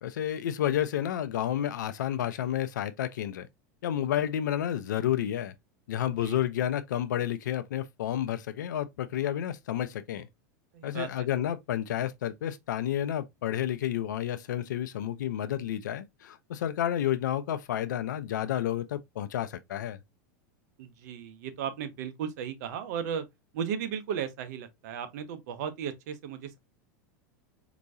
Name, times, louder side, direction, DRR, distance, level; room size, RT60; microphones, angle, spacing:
voice 1, 0.0-3.5 3.8-5.5 5.9-10.3 10.8-20.0, left 11 dB, 85° left, 0.6 m, -30 dB
voice 2, 10.7-11.3 20.8-23.2 23.5-26.6, right 8 dB, 65° right, 0.9 m, -35 dB
4.5 x 3.0 x 2.6 m
hypercardioid pair, 110°, 10 cm